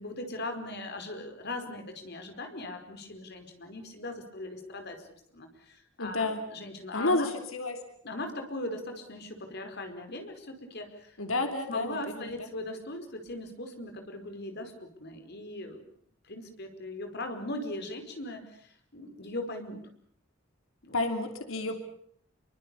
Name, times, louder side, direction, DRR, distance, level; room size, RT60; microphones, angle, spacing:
voice 1, 0.0-5.1 5.3-7.3 8.0-15.8 16.2-19.8 20.8-21.0, left 1 dB, 55° left, 6 dB, 4.9 m, -39 dB
voice 2, 6.0-6.4 6.9-7.8 11.2-12.3 20.9-21.8, left 2 dB, 90° left, 6 dB, 3.0 m, -30 dB
27.5 x 24.0 x 6.9 m, 0.64 s
head